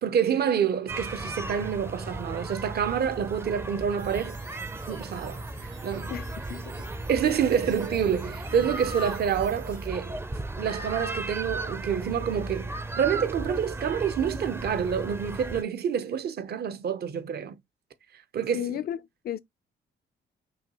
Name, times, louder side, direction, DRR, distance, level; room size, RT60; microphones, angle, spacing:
voice 1, 0.0-4.4 4.9-6.2 7.1-10.2 10.6-12.7 13.0-17.6 18.3-18.8, right 8 dB, 55° right, 0.7 m, -27 dB
sound 1, 0.9-15.6, right 2 dB, 10° right, 0.5 m, -36 dB
sound 2, 4.0-9.9, right 6 dB, 85° right, 1.9 m, -52 dB
voice 2, 6.1-6.9 18.5-19.0 19.2-19.4, left 11 dB, 50° left, 0.4 m, -33 dB
5.8 x 2.2 x 2.9 m
cardioid pair, 90°, 20 cm